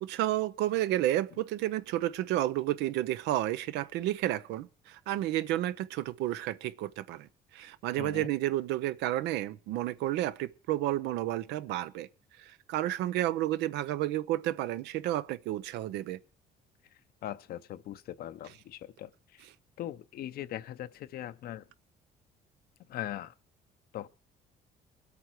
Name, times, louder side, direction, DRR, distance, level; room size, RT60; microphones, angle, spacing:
voice 1, 0.0-7.3 7.5-12.1 12.7-16.2, right 14 dB, 90° right, 0.7 m, -31 dB
voice 2, 8.0-8.3 17.2-19.5 19.8-21.7 22.9-23.3 23.9-24.1, left 12 dB, 65° left, 0.7 m, -40 dB
22.0 x 8.5 x 4.6 m
cardioid pair, 110°, 17 cm